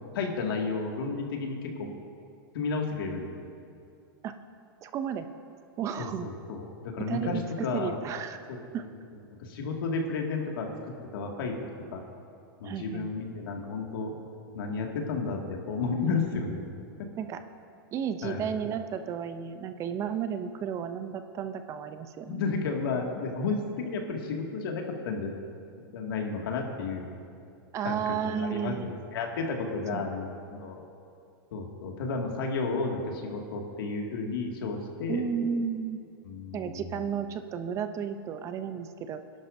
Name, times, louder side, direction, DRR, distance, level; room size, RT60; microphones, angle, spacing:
voice 1, 0.1-1.9 2.5-3.4 6.0-8.0 8.5-8.6 9.4-10.7 11.1-11.5 11.9-12.0 12.6-14.2 14.5-16.6 18.2-18.5 22.3-25.3 25.9-27.1 27.8-30.8 31.5-35.2 36.3-37.0, left 4 dB, 70° left, 1 dB, 2.0 m, -32 dB
voice 2, 4.8-5.2 5.8-6.3 7.0-8.4 8.7-8.8 12.6-13.1 17.2-17.4 17.9-22.4 27.7-29.0 29.9-30.1 35.1-36.0 36.5-39.2, right 7 dB, 25° right, 9 dB, 0.5 m, -33 dB
23.5 x 11.5 x 2.6 m, 2.5 s
supercardioid pair, 145°, 12 cm